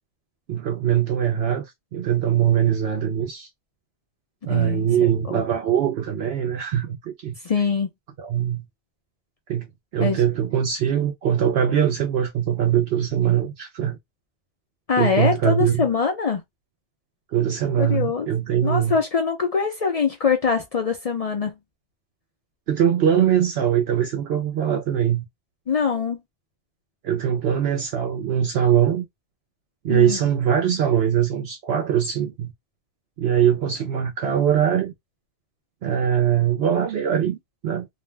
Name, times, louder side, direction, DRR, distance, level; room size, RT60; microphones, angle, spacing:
voice 1, 0.5-3.5 4.4-7.3 8.2-8.6 9.5-9.7 9.9-14.0 15.0-15.9 17.3-19.0 22.7-25.2 27.0-29.1 29.8-32.5 33.2-34.9 35.8-37.9, right 9 dB, 70° right, 0.8 m, -22 dB
voice 2, 4.5-4.9 5.3-5.4 7.4-7.9 10.0-10.2 14.9-16.4 17.8-18.3 18.6-21.5 25.7-26.2 29.9-30.2 30.7-30.8, left 5 dB, 50° left, 0.4 m, -23 dB
2.5 x 2.0 x 3.2 m
omnidirectional pair, 1.1 m